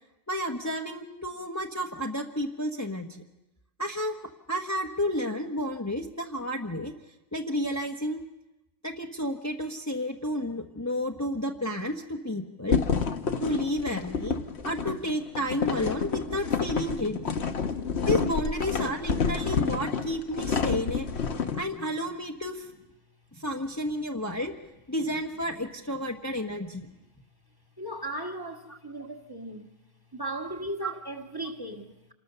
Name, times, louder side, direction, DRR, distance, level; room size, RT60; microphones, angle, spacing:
voice 1, 0.3-3.2 3.8-4.2 4.5-6.9 7.3-8.2 8.8-12.8 13.4-14.4 14.6-17.3 18.1-21.1 21.5-22.7 23.3-24.5 24.9-26.9 30.8-30.9, equal, 15° left, 1.2 m, -31 dB
sound 1, 12.7-21.6, left 5 dB, 55° left, 1.4 m, -29 dB
voice 2, 27.8-29.7 30.1-32.1, right 1 dB, 15° right, 1.7 m, -37 dB
27.5 x 20.0 x 6.9 m
omnidirectional pair, 1.3 m